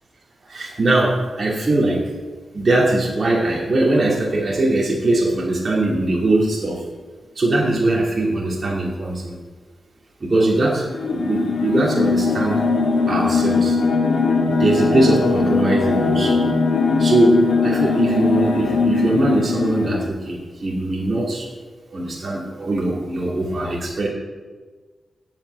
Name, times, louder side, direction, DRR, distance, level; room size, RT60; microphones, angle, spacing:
voice 1, 0.5-2.1 2.5-6.8 7.4-9.3 10.2-12.6 13.1-13.8 14.6-16.4 17.0-21.5 21.9-24.1, right 2 dB, 35° right, -5 dB, 2.5 m, -21 dB
sound 1, 10.9-20.1, left 4 dB, 80° left, 1.8 m, -20 dB
14.5 x 5.8 x 9.0 m, 1.4 s
wide cardioid pair, 135°, 0 cm